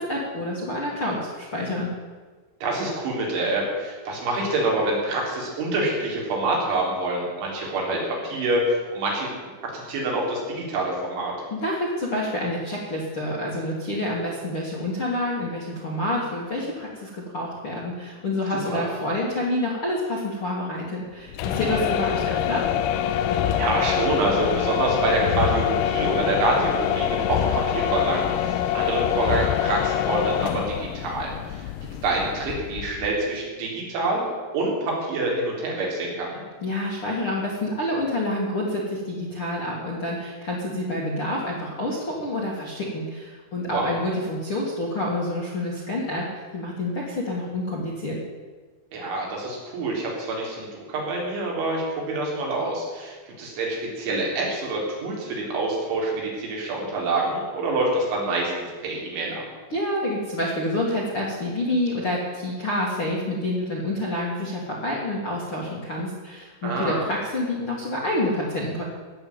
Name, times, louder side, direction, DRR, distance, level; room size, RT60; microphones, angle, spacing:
voice 1, 0.0-1.9 11.5-22.6 36.6-48.2 59.7-68.8, left 1 dB, 40° left, -4 dB, 2.0 m, -28 dB
voice 2, 2.6-11.3 18.7-18.9 21.6-21.9 23.1-31.7 32.0-36.4 43.7-44.0 48.9-58.5 58.8-59.4 66.6-67.1, right 2 dB, 75° right, -3 dB, 6.0 m, -26 dB
sound 1, 21.3-33.2, left 10 dB, 85° left, 2.3 m, -25 dB
17.0 x 7.0 x 8.8 m, 1.4 s
omnidirectional pair, 5.5 m